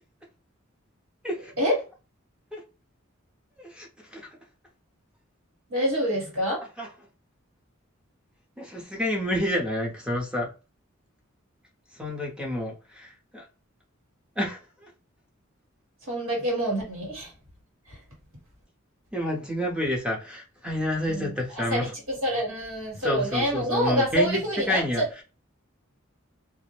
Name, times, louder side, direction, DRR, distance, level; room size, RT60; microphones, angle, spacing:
voice 1, 3.6-4.3 6.8-6.9 8.6-10.5 12.0-13.4 14.4-14.9 19.1-21.9 23.0-25.2, left 1 dB, 5° right, 0.6 m, -29 dB
voice 2, 5.7-6.6 16.1-17.3 21.1-21.3 21.7-25.1, equal, 85° right, 1.5 m, -26 dB
2.4 x 2.0 x 3.1 m
head